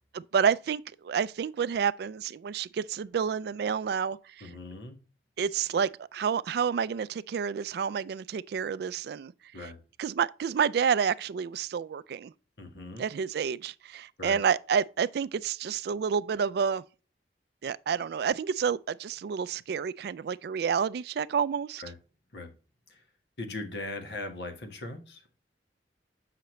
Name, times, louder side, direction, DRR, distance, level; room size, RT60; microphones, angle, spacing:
voice 1, 0.1-4.5 5.4-9.3 9.6-9.7 10.0-12.3 13.0-16.8 17.6-21.8, right 7 dB, 60° right, 0.3 m, -29 dB
voice 2, 4.4-5.0 9.5-9.8 12.6-13.1 14.2-14.4 21.8-22.0 22.3-22.5 22.9-23.0 23.4-25.2, left 2 dB, 70° left, 1.3 m, -39 dB
7.7 x 5.8 x 3.1 m
head